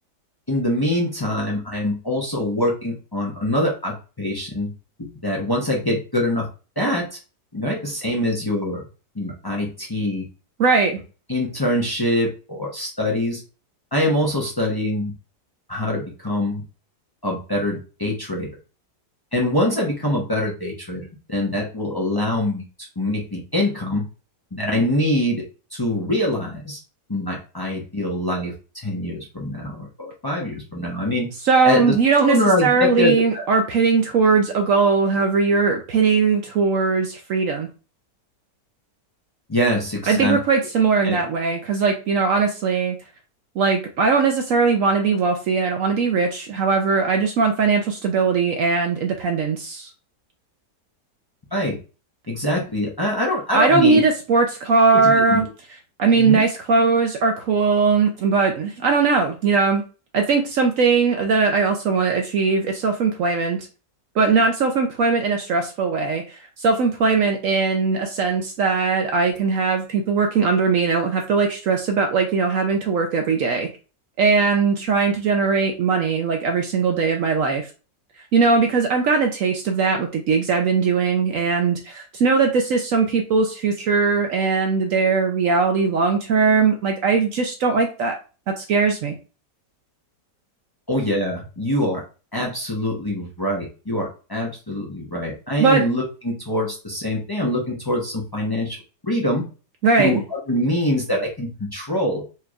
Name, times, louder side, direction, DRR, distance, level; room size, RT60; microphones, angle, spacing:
voice 1, 0.5-4.7 5.0-6.5 6.8-7.2 7.5-8.8 9.1-10.3 11.3-13.4 13.9-15.1 15.7-16.6 17.2-18.5 19.3-22.6 23.0-24.1 24.5-25.4 25.7-26.8 27.1-28.5 28.8-31.3 31.6-31.9 32.2-33.4 39.5-40.4 41.0-41.2 51.5-51.8 52.3-54.0 54.9-55.4 56.1-56.4 90.9-92.0 92.3-98.8 99.0-99.5 100.0-102.2, left 1 dB, 20° left, -3 dB, 0.6 m, -24 dB
voice 2, 10.6-11.0 31.4-37.7 40.1-43.0 43.6-49.9 53.5-55.4 56.0-59.8 60.1-63.6 64.2-73.7 74.2-77.7 78.3-88.1 88.6-89.1 95.6-95.8 99.8-100.2, right 4 dB, 65° right, 4 dB, 0.8 m, -20 dB
4.5 x 3.1 x 2.4 m, 0.33 s
omnidirectional pair, 1.8 m